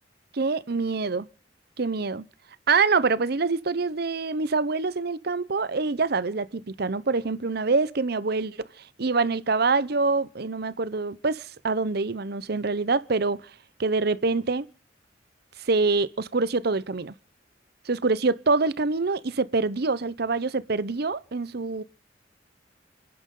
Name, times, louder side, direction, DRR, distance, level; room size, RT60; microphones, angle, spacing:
voice 1, 0.3-1.3 1.8-2.3 2.7-8.6 9.0-13.5 13.8-14.7 15.6-17.1 17.9-21.8, right 4 dB, 60° right, 0.8 m, -25 dB
29.0 x 10.5 x 3.8 m
head